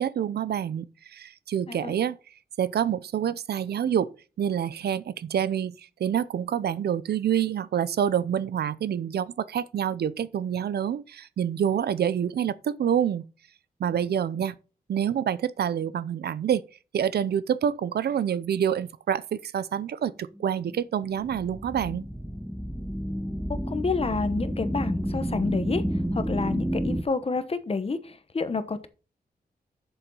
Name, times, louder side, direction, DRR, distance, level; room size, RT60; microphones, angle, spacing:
voice 1, 0.0-2.2 2.6-4.1 4.4-13.2 13.8-14.5 14.9-16.6 16.9-22.0, right 9 dB, 85° right, 0.6 m, -27 dB
sound 1, 20.4-27.0, equal, 5° right, 0.8 m, -30 dB
voice 2, 23.7-25.8 26.1-28.9, left 4 dB, 35° left, 1.1 m, -29 dB
7.1 x 6.8 x 5.5 m
wide cardioid pair, 100°, 16 cm